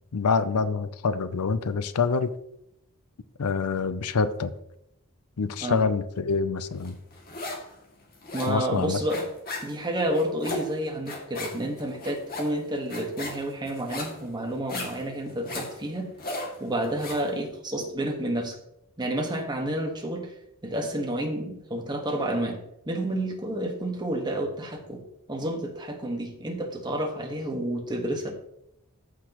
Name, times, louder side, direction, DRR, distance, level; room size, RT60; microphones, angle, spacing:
voice 1, 0.1-2.3 3.4-4.5 5.4-7.0 8.5-9.0, left 4 dB, 80° left, 13 dB, 0.6 m, -26 dB
sound 1, 6.8-7.7 8.0-17.3, left 2 dB, 45° left, 2.3 m, -37 dB
voice 2, 8.3-9.3 9.6-16.1 16.6-18.6 19.0-20.3 20.6-22.6 22.8-25.0 25.3-28.3, right 1 dB, 20° right, 2 dB, 1.5 m, -30 dB
14.0 x 6.0 x 3.0 m, 0.79 s
head